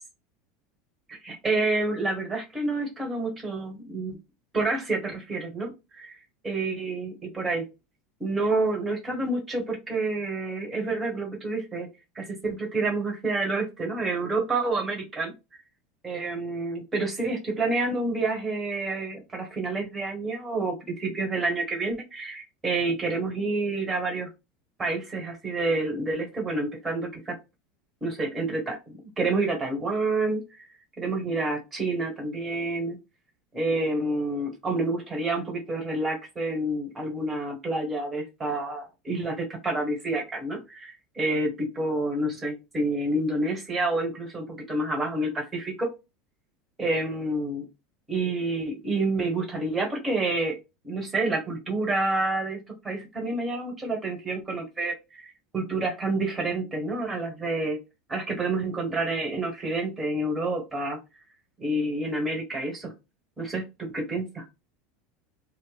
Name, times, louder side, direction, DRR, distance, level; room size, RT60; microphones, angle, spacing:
voice 1, 1.1-4.2 4.5-6.2 6.4-7.7 8.2-11.9 12.1-15.6 16.0-24.3 24.8-27.3 28.0-30.4 31.0-33.0 33.5-45.9 46.8-47.7 48.1-50.6 50.8-57.8 58.1-61.0 61.6-62.9 63.4-64.4, right 2 dB, 20° right, 1 dB, 1.2 m, -28 dB
3.0 x 2.0 x 2.3 m, 0.25 s
figure-of-eight pair, 80°, 0 cm